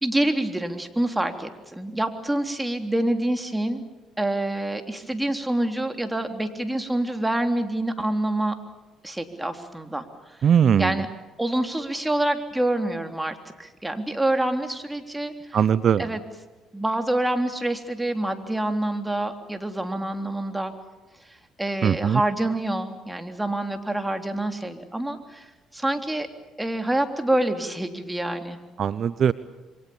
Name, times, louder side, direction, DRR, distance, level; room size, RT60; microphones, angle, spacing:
voice 1, 0.0-3.8 4.2-8.6 9.0-10.1 10.4-10.5 10.8-11.1 11.4-15.6 16.0-16.2 16.7-20.7 21.6-25.5 25.7-26.3 26.6-28.6, right 1 dB, 10° right, 6 dB, 3.4 m, -26 dB
voice 2, 10.4-11.0 15.5-16.0 21.8-22.2 28.8-29.3, right 8 dB, 55° right, 16 dB, 0.8 m, -20 dB
27.5 x 23.5 x 7.2 m, 1.2 s
hypercardioid pair, 55°, 0 cm